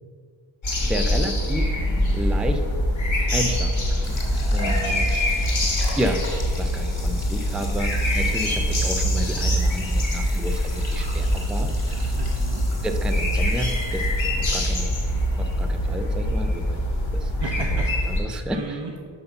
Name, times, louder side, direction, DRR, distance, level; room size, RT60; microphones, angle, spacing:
sound 1, 0.6-18.2, equal, 75° left, 2.0 m, -24 dB
voice 1, 0.9-1.7 2.1-2.6 3.3-4.2 4.5-5.2 6.0-12.1 12.8-14.1 14.5-14.9 15.4-16.8 17.1-17.3 17.7-18.8, right 1 dB, ahead, 5 dB, 0.4 m, -31 dB
sound 2, 4.0-15.9, left 2 dB, 35° left, 2.0 m, -39 dB
voice 2, 4.6-5.0 12.2-12.6 17.4-18.2 18.5-19.1, right 4 dB, 70° right, 0 dB, 0.8 m, -35 dB
5.9 x 5.6 x 6.7 m, 2.1 s
wide cardioid pair, 155°, 48 cm